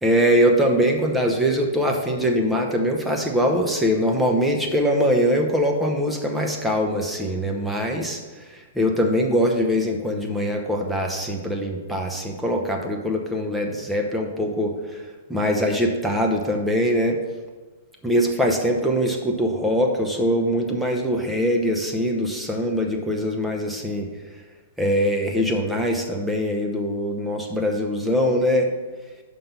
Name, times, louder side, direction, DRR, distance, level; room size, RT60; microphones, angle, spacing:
voice 1, 0.0-15.0 15.3-17.2 18.0-24.1 24.8-28.7, equal, 5° right, 1 dB, 0.8 m, -22 dB
5.5 x 5.3 x 5.6 m, 1.3 s
figure-of-eight pair, 110°, 0 cm